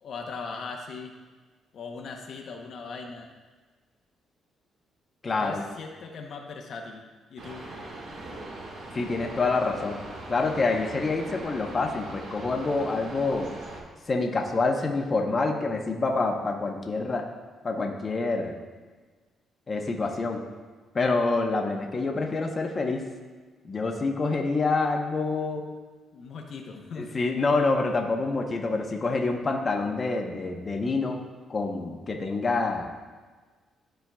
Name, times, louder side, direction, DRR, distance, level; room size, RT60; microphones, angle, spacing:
voice 1, 0.0-1.1 1.7-3.3 5.3-7.0 7.3-7.6 26.1-27.2, left 4 dB, 60° left, 2 dB, 0.8 m, -39 dB
voice 2, 5.2-5.6 8.9-10.0 10.3-13.5 14.1-17.2 17.6-18.6 19.7-20.4 20.9-23.0 23.6-25.6 26.9-31.2 31.5-32.9, left 3 dB, 35° left, 2 dB, 0.8 m, -27 dB
sound 1, 7.4-13.8, right 2 dB, 85° right, 1.6 m, -40 dB
12.5 x 4.5 x 2.3 m, 1.4 s
cardioid pair, 90°, 0 cm